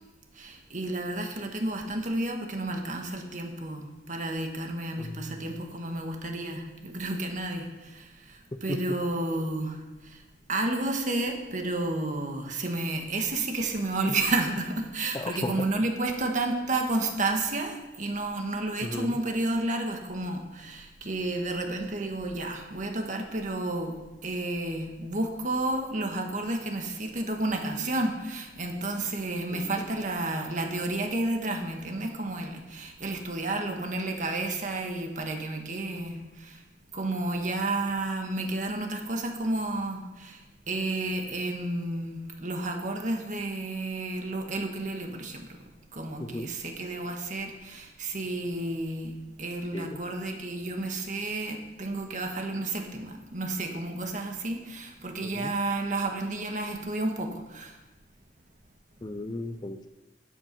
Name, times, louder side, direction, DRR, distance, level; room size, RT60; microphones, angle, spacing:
voice 1, 0.4-9.8 10.1-10.2 10.5-23.9 24.2-36.6 36.9-40.4 40.7-45.5 45.9-49.1 49.4-57.7, right 2 dB, 45° right, 3 dB, 1.5 m, -31 dB
voice 2, 5.0-5.3 8.7-8.8 15.1-15.7 18.8-19.1 29.5-29.9 46.2-46.5 49.7-50.0 55.2-55.5 59.0-59.9, left 2 dB, 25° left, 9 dB, 0.5 m, -35 dB
12.5 x 7.4 x 5.4 m, 1.1 s
head